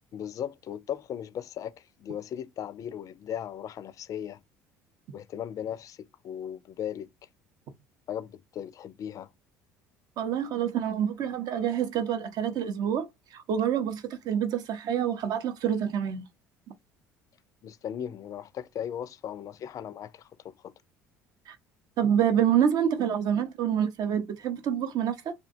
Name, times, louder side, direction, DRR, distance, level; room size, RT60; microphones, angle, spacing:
voice 1, 0.1-4.4 5.1-7.1 8.1-9.3 17.6-20.7, left 9 dB, 45° left, 0.3 m, -37 dB
voice 2, 10.2-13.1 13.3-16.3 21.5-21.6 22.0-25.4, right 9 dB, 55° right, 0.6 m, -27 dB
2.6 x 2.1 x 2.6 m
hypercardioid pair, 65°, 8 cm